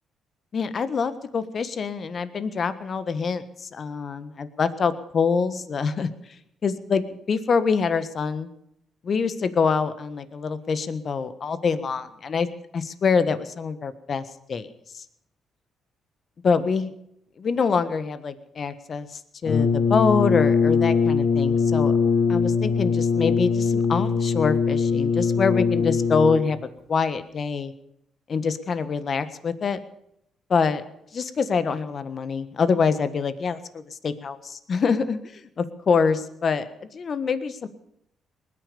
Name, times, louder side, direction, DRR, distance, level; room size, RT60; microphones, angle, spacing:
voice 1, 0.5-6.1 6.6-7.0 7.3-8.5 9.0-12.5 12.7-14.7 14.9-15.0 16.4-16.9 17.4-19.1 19.4-21.9 22.3-26.6 26.9-27.7 28.3-29.8 30.5-30.8 31.1-36.7 36.9-37.7, left 5 dB, 50° left, 13 dB, 1.4 m, -25 dB
Brass instrument, 19.4-26.6, left 5 dB, 70° left, 1.1 m, -22 dB
20.0 x 10.0 x 7.0 m, 0.77 s
supercardioid pair, 70°, 0 cm